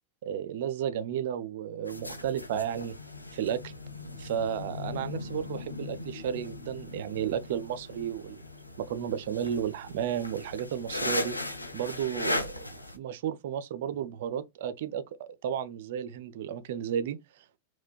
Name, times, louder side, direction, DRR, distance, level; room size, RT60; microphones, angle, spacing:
voice 1, 0.2-3.0 3.3-3.7 4.2-8.4 8.8-11.4 11.7-17.6, right 9 dB, 55° right, 0.4 m, -33 dB
sound 1, 1.9-13.0, left 2 dB, 85° left, 0.6 m, -38 dB
4.3 x 2.2 x 2.3 m
figure-of-eight pair, 90°, 0 cm